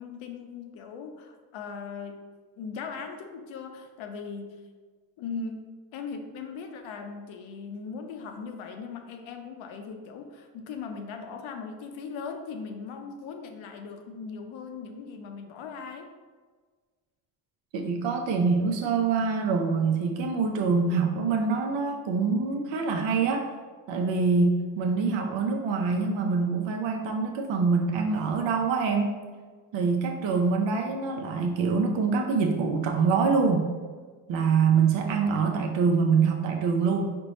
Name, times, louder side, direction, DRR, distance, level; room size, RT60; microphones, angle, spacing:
voice 1, 0.0-2.2 2.6-4.6 5.2-16.1, left 5 dB, 80° left, 5 dB, 0.6 m, -39 dB
voice 2, 17.7-23.5 23.9-29.1 29.7-33.7 34.3-37.2, right 5 dB, 70° right, 3 dB, 0.6 m, -25 dB
4.3 x 2.2 x 4.0 m, 1.5 s
supercardioid pair, 55°, 46 cm